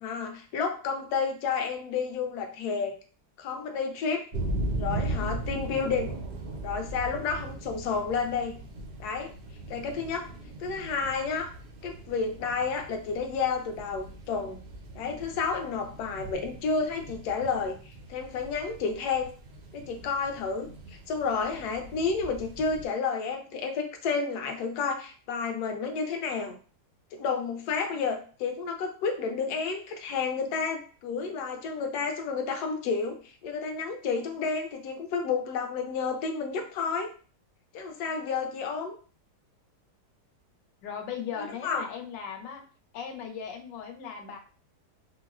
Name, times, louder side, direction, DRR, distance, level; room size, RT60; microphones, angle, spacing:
voice 1, 0.0-2.9 3.4-4.3 4.8-6.2 6.6-8.6 9.0-9.3 9.7-10.3 10.6-11.5 11.8-14.6 14.9-17.8 18.1-19.3 19.7-26.5 27.1-37.1 37.7-38.9 41.4-41.8, left 5 dB, 70° left, 4 dB, 1.1 m, -31 dB
sound 1, 4.3-22.9, right 2 dB, 70° right, 0.6 m, -39 dB
voice 2, 40.8-42.6 42.9-44.4, left 7 dB, 90° left, 4 dB, 1.3 m, -38 dB
4.2 x 2.0 x 2.3 m, 0.39 s
omnidirectional pair, 1.9 m